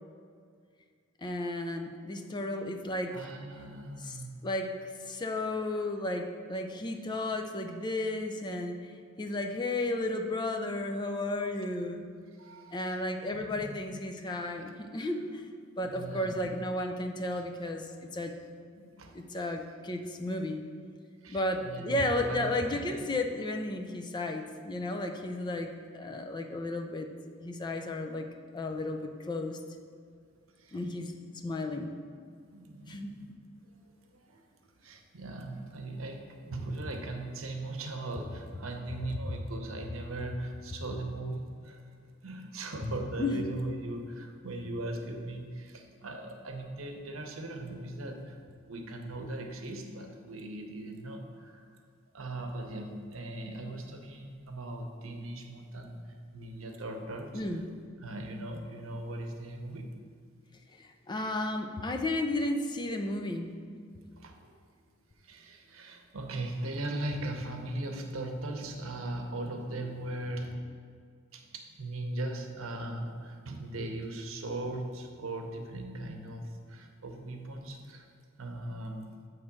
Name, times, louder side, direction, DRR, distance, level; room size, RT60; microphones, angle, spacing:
voice 1, 1.2-3.2 4.0-4.2 4.4-8.9 9.2-12.0 12.7-15.4 15.8-18.3 19.1-20.6 21.3-27.1 27.4-28.3 28.5-29.6 30.7-31.9 32.9-33.2 43.2-43.5 57.3-57.6 60.7-63.5, left 2 dB, 20° left, 5 dB, 0.4 m, -33 dB
voice 2, 3.1-4.4 12.4-13.0 13.3-13.8 15.8-16.6 17.3-17.4 18.8-19.1 21.2-22.9 30.6-30.8 32.3-33.3 34.2-34.5 34.8-41.8 42.2-48.4 48.6-51.7 52.1-56.0 56.3-57.4 58.0-59.9 64.2-64.5 65.2-70.5 71.3-78.1 78.4-79.1, right 2 dB, 85° right, 3 dB, 0.8 m, -39 dB
7.6 x 3.2 x 6.0 m, 2.1 s
head